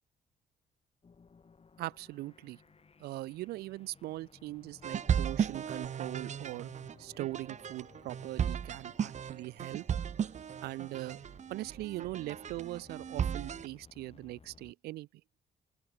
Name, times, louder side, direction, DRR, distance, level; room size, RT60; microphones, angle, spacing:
sound 1, 1.0-14.7, left 5 dB, 40° left, 3.0 m, -60 dB
voice 1, 1.8-2.6 3.0-6.7 7.0-9.8 10.6-11.2 11.5-15.1, right 17 dB, 90° right, 1.3 m, -40 dB
sound 2, 4.8-13.7, right 8 dB, 50° right, 0.8 m, -35 dB
open air
supercardioid pair, 65°, 16 cm